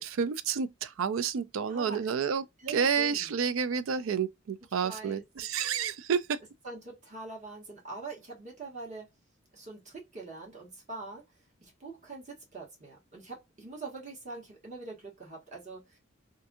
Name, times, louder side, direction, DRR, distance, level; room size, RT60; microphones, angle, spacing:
voice 1, 0.0-6.4, right 6 dB, 80° right, 0.4 m, -30 dB
voice 2, 1.6-2.1 2.6-3.4 4.8-5.2 6.6-9.1 9.5-11.2 11.6-16.0, right 3 dB, 35° right, 1.2 m, -43 dB
2.6 x 2.6 x 2.3 m
head